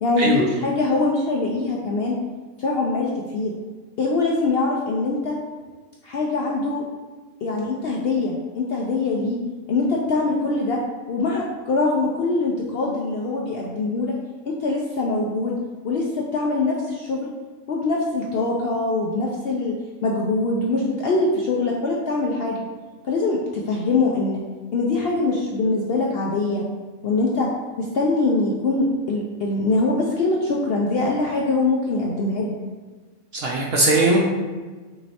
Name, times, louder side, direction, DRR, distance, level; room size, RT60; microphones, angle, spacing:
voice 1, 0.0-2.2 2.6-3.5 4.0-5.3 6.0-6.8 7.4-9.4 9.7-10.8 11.1-14.1 14.5-15.5 15.8-17.3 17.7-19.7 20.0-22.6 23.0-24.4 24.7-26.6 27.0-27.5 27.8-32.5, left 3 dB, 65° left, -2 dB, 0.6 m, -23 dB
voice 2, 33.3-34.2, right 2 dB, 60° right, -1 dB, 0.6 m, -19 dB
6.0 x 3.1 x 2.8 m, 1.4 s
omnidirectional pair, 1.5 m